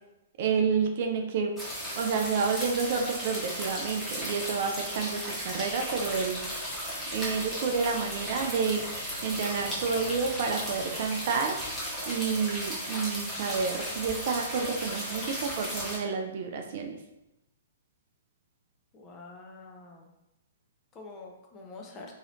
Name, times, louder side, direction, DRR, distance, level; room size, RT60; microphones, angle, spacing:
voice 1, 0.4-1.5 2.0-6.4 7.1-11.6 12.1-17.0, right 5 dB, 50° right, 4 dB, 0.4 m, -29 dB
sound 1, 1.6-16.0, equal, ahead, 1.1 m, -35 dB
voice 2, 18.9-20.1 21.0-22.1, left 3 dB, 25° left, 1 dB, 0.6 m, -46 dB
2.9 x 2.8 x 2.5 m, 0.91 s
figure-of-eight pair, 115°, 0 cm